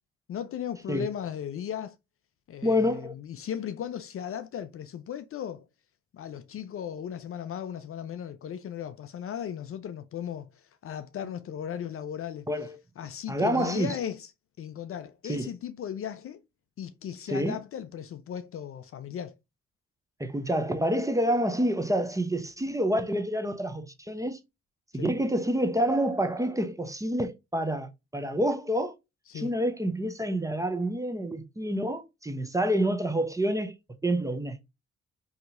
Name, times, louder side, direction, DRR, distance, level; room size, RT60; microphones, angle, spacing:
voice 1, 0.3-2.0 2.5-5.7 6.1-12.5 13.0-14.3 14.6-16.4 16.8-19.3 24.9-25.1 29.3-29.5, left 9 dB, 45° left, 0.4 m, -36 dB
voice 2, 2.6-3.1 12.5-12.8 13.3-14.0 15.3-15.5 17.3-17.6 20.2-24.4 24.9-28.9 29.3-33.7 34.0-34.6, equal, 10° right, 0.5 m, -28 dB
2.8 x 2.7 x 2.4 m
hypercardioid pair, 45°, 32 cm